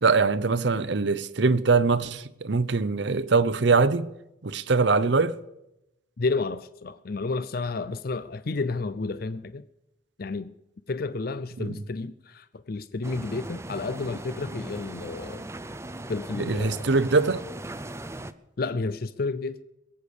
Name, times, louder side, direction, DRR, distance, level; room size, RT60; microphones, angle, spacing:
voice 1, 0.0-4.1 4.4-5.4 11.6-11.7 16.4-17.4, right 4 dB, 60° right, 0.7 m, -22 dB
voice 2, 6.2-9.6 10.2-10.5 10.9-15.5 16.1-16.9 18.6-19.6, left 3 dB, 50° left, 0.5 m, -31 dB
sound 1, 13.0-18.3, right 1 dB, 15° right, 0.5 m, -38 dB
22.0 x 8.2 x 7.0 m
head